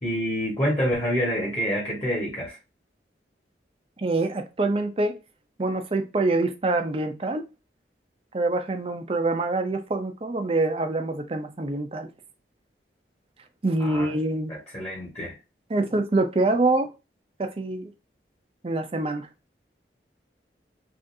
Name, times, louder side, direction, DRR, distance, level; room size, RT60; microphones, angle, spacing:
voice 1, 0.0-2.6 13.8-14.1 14.5-15.3, equal, 35° left, 1.3 m, -27 dB
voice 2, 4.0-5.1 5.6-7.4 8.3-12.1 13.6-14.5 15.7-16.9 17.4-17.9 18.6-19.3, right 2 dB, 30° right, 0.5 m, -25 dB
3.6 x 2.5 x 2.6 m
head